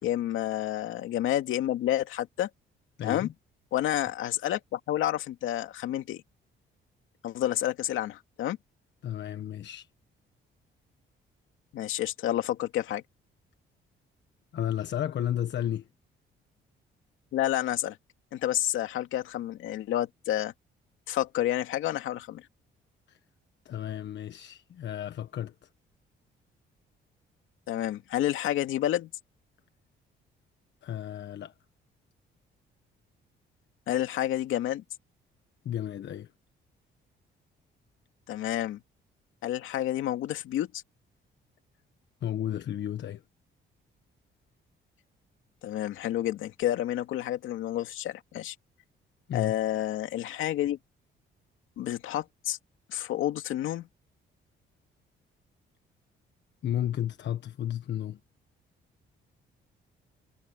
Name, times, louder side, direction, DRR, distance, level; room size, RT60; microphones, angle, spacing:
voice 1, 0.0-2.5 3.0-3.3 3.7-6.2 7.2-8.6 11.7-13.0 17.3-18.0 18.3-20.5 21.1-22.4 27.7-29.1 33.9-34.8 38.3-38.8 39.4-40.8 45.6-48.5 49.3-50.8 51.8-52.6 52.9-53.9, left 12 dB, 85° left, 2.6 m, -29 dB
voice 2, 3.0-3.3 9.0-9.9 14.5-15.9 23.1-23.2 23.6-25.5 30.8-31.5 35.6-36.3 42.2-43.2 49.3-49.5 56.6-58.2, left 11 dB, 65° left, 1.3 m, -32 dB
cardioid pair, 90°, 20 cm